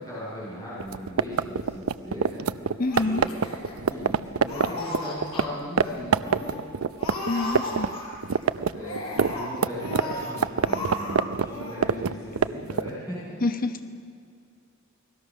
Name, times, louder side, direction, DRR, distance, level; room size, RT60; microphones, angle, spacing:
voice 1, 0.0-2.4 3.0-3.4 3.7-6.6 8.7-13.4, left 1 dB, 20° left, -9 dB, 7.9 m, -37 dB
sound 1, 0.8-5.5 5.8-5.9 6.1-7.9 8.1-12.9, right 6 dB, 85° right, 0.6 m, -24 dB
Laughter, 2.8-4.1 4.4-5.4 5.8-5.9 6.2-6.6 7.0-8.3 8.8-10.3 10.6-11.2 11.5-11.8, left 1 dB, 80° left, 6.2 m, -35 dB
voice 2, 2.8-3.3 7.3-7.9 13.4-13.9, left 2 dB, 45° left, 7 dB, 1.3 m, -27 dB
29.5 x 19.5 x 6.4 m, 2.3 s
head